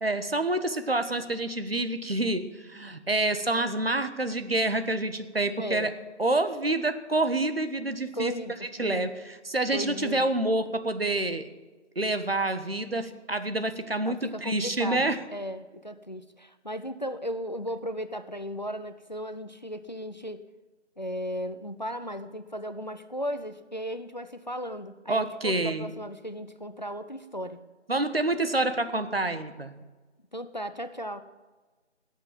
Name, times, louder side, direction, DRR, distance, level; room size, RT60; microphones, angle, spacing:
voice 1, 0.0-5.9 6.2-8.3 8.8-11.5 11.9-15.2 25.1-25.9 27.9-29.8, right 2 dB, 55° right, 9 dB, 1.5 m, -27 dB
voice 2, 5.6-5.9 8.1-9.1 9.7-10.2 14.0-20.4 21.0-27.6 30.3-31.2, equal, 40° left, 10 dB, 0.7 m, -36 dB
18.0 x 8.2 x 9.0 m, 1.3 s
figure-of-eight pair, 170°, 36 cm